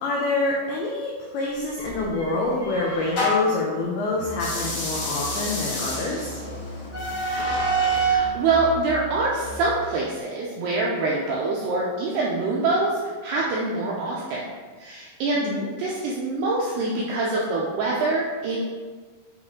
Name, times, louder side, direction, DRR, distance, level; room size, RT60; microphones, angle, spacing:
voice 1, 0.0-6.4 15.4-15.7, left 2 dB, 90° left, -3 dB, 2.2 m, -26 dB
sound 1, 1.8-3.6 4.3-8.3, right 2 dB, 70° left, 1.4 m, -27 dB
Musical instrument, 4.2-9.7, left 2 dB, 50° left, 1.5 m, -38 dB
voice 2, 8.0-14.4 14.8-15.5 15.8-18.6, right 3 dB, 80° right, -4 dB, 2.3 m, -25 dB
9.2 x 3.2 x 3.6 m, 1.4 s
omnidirectional pair, 5.5 m